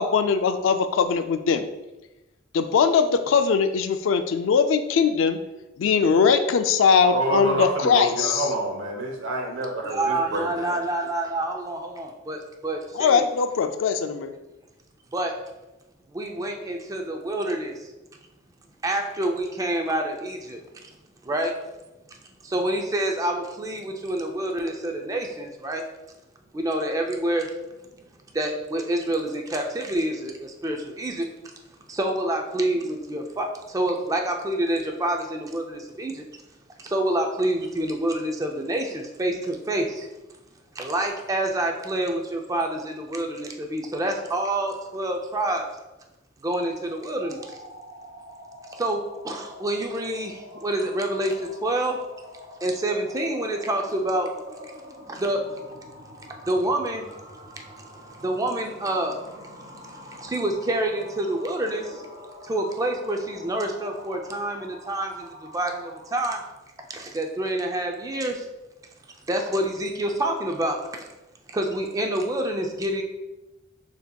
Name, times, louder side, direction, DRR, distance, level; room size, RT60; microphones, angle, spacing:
voice 1, 0.0-1.7 2.5-5.4 5.8-8.5 12.9-14.3, left 6 dB, 75° left, 9 dB, 0.3 m, -21 dB
voice 2, 7.0-10.8, right 1 dB, 80° right, 1 dB, 1.0 m, -28 dB
voice 3, 9.8-13.2 15.1-15.4 16.1-17.9 18.8-20.9 21.2-21.5 22.4-25.8 26.5-27.5 27.9-28.0 28.3-31.3 31.9-36.2 36.8-40.1 40.7-45.7 46.4-47.5 48.7-52.0 52.6-54.3 55.1-55.4 56.4-57.2 57.8-62.0 62.4-66.4 66.9-68.5 69.3-71.1 71.5-73.0, right 1 dB, 15° right, 3 dB, 0.4 m, -27 dB
sound 1, 47.2-66.5, left 1 dB, 35° right, 1.5 m, -45 dB
6.5 x 2.8 x 2.2 m, 1.0 s
head